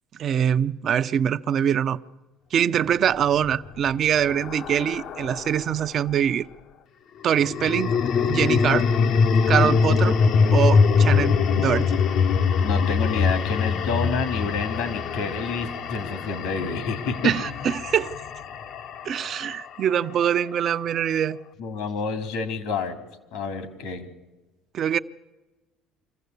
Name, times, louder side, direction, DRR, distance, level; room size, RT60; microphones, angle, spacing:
voice 1, 0.2-2.0 2.5-6.5 7.2-7.9 8.3-8.9 9.5-10.2 10.5-12.0 17.2-18.2 19.0-21.4 24.7-25.0, right 9 dB, 50° right, 0.7 m, -23 dB
sound 1, 3.2-5.7 7.3-19.6, left 5 dB, 60° left, 1.0 m, -23 dB
voice 2, 12.6-17.3 21.6-23.0 23.3-24.1, left 4 dB, 75° left, 2.9 m, -28 dB
25.0 x 15.0 x 8.2 m
supercardioid pair, 95°, 0 cm